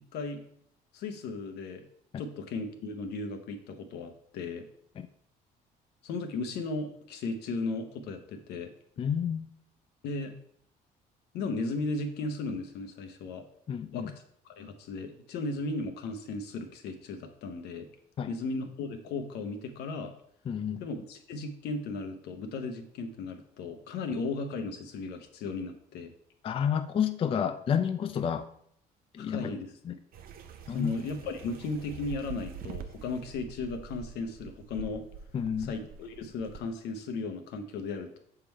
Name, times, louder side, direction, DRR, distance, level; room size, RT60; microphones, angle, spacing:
voice 1, 0.9-1.9 2.2-4.7 6.0-8.7 10.0-10.3 11.3-13.4 13.9-14.1 14.4-17.9 18.3-20.1 20.8-26.1 29.2-29.7 30.7-35.0 35.7-38.2, left 3 dB, 80° left, 5 dB, 0.9 m, -36 dB
voice 2, 9.0-9.5 13.7-14.2 18.2-18.3 20.5-20.8 26.4-28.5 29.1-29.6 29.8-29.9 30.7-31.0 35.3-35.7, left 8 dB, 35° left, 8 dB, 0.4 m, -30 dB
sound 1, 30.1-36.6, right 7 dB, 60° right, 0.6 m, -45 dB
6.7 x 3.7 x 4.4 m, 0.67 s
cardioid pair, 110°, 17 cm